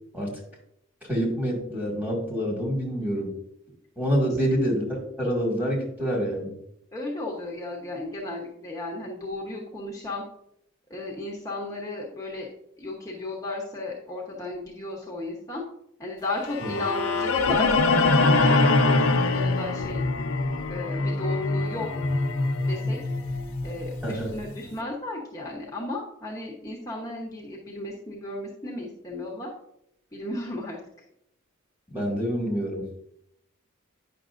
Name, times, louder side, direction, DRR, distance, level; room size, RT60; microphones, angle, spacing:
voice 1, 1.1-3.3 4.0-6.5 24.0-24.3 31.9-32.9, equal, 10° right, -2 dB, 2.0 m, -27 dB
voice 2, 6.9-10.2 10.9-12.5 12.8-15.6 16.0-20.1 20.7-21.9 22.7-23.0 23.6-29.5 30.1-30.8, left 2 dB, 15° left, -3 dB, 1.0 m, -34 dB
sound 1, 16.4-24.5, left 3 dB, 80° left, 0.7 m, -24 dB
9.4 x 6.0 x 2.5 m, 0.76 s
head